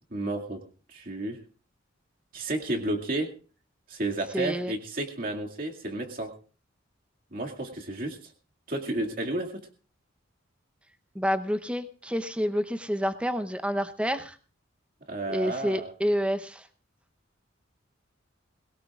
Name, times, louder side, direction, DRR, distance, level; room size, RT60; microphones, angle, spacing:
voice 1, 0.1-0.6 0.9-1.4 2.3-3.3 3.9-6.3 7.3-8.3 8.7-9.7 15.1-15.9, right 2 dB, 45° right, 1 dB, 2.2 m, -32 dB
voice 2, 4.3-4.7 11.1-14.4 15.3-16.7, equal, 5° right, 8 dB, 0.8 m, -28 dB
21.0 x 17.5 x 2.5 m, 0.38 s
head